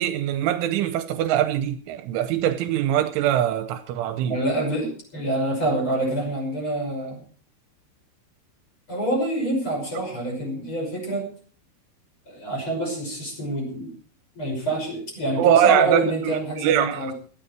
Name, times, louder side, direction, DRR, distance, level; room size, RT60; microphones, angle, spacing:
voice 1, 0.0-4.4 15.4-17.1, right 11 dB, 80° right, 3.1 m, -22 dB
voice 2, 4.3-7.2 8.9-11.3 12.3-13.9 14.3-17.1, right 1 dB, 25° left, 6.1 m, -26 dB
17.0 x 12.5 x 4.5 m
omnidirectional pair, 5.8 m